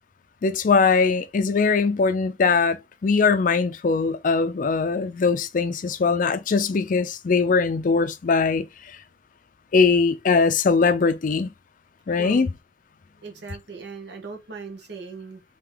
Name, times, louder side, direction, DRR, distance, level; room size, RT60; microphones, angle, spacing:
voice 1, 0.4-9.0 9.7-11.5 12.1-12.5, left 4 dB, 45° left, 0.4 m, -21 dB
voice 2, 12.2-12.5 13.2-15.4, right 4 dB, 70° right, 1.0 m, -38 dB
3.5 x 2.9 x 3.2 m
head